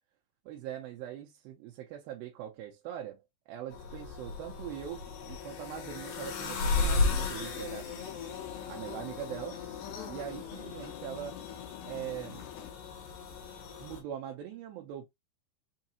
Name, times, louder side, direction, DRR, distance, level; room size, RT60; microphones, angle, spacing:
voice 1, 0.5-3.2 3.5-7.9 8.7-9.6 10.1-11.4 11.8-12.4 13.8-15.1, right 11 dB, 85° right, 2.5 m, -41 dB
sound 1, 3.7-14.0, left 4 dB, 70° left, 2.8 m, -35 dB
sound 2, 7.0-12.7, left 12 dB, 85° left, 2.6 m, -48 dB
6.3 x 2.4 x 2.8 m
omnidirectional pair, 4.2 m